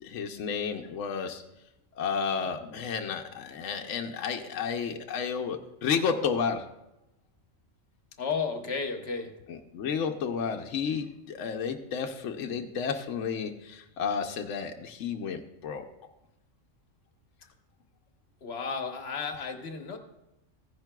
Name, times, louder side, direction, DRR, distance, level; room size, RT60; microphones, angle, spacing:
voice 1, 0.0-1.4 2.0-6.7 9.5-15.9, left 6 dB, 75° left, 4 dB, 1.0 m, -32 dB
voice 2, 8.2-9.3 18.4-20.0, left 5 dB, 55° left, 5 dB, 1.2 m, -33 dB
15.0 x 10.5 x 2.2 m, 0.94 s
omnidirectional pair, 1.3 m